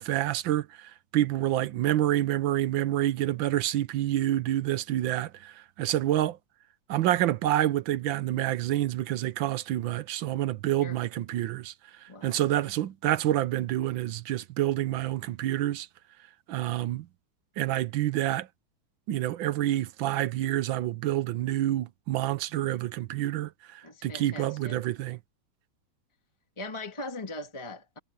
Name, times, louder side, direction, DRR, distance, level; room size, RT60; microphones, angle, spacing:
voice 1, 0.0-6.4 6.9-11.7 12.2-15.9 16.5-17.1 17.6-18.5 19.1-25.2, right 13 dB, 70° right, 1.5 m, -28 dB
voice 2, 12.1-12.4 23.8-24.8 26.6-28.0, left 2 dB, 15° left, 2.1 m, -40 dB
omnidirectional pair, 2.4 m